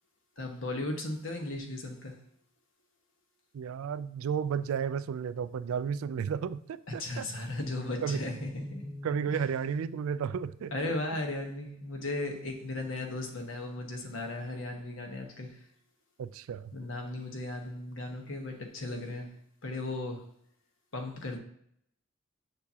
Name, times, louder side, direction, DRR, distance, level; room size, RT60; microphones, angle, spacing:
voice 1, 0.4-2.2 6.9-8.9 10.7-15.6 16.7-19.3 19.6-20.2 20.9-21.4, left 2 dB, 65° left, 3 dB, 1.1 m, -36 dB
voice 2, 3.5-7.3 8.0-8.2 9.0-10.9 16.2-16.7, right 7 dB, 85° right, 15 dB, 0.3 m, -33 dB
sound 1, 8.4-14.7, left 1 dB, 10° left, 0.4 m, -48 dB
6.7 x 5.8 x 2.8 m, 0.69 s
head